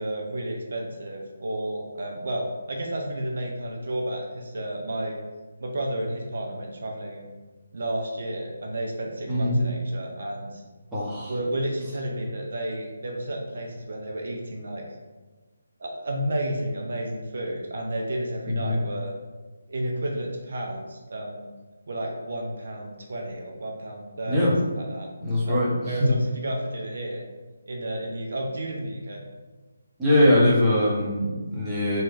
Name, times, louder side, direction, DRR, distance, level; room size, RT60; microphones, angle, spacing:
voice 1, 0.0-5.2 5.6-7.3 7.7-10.6 11.3-14.8 15.8-19.1 19.7-21.5 21.9-25.1 25.5-27.2 27.7-29.2, right 1 dB, 60° right, 0 dB, 0.5 m, -32 dB
voice 2, 9.3-9.6 10.9-11.3 18.6-18.8 24.3-24.6 25.2-26.2 30.0-32.0, left 1 dB, 10° right, -9 dB, 0.8 m, -22 dB
3.1 x 2.1 x 3.2 m, 1.3 s
figure-of-eight pair, 150°, 0 cm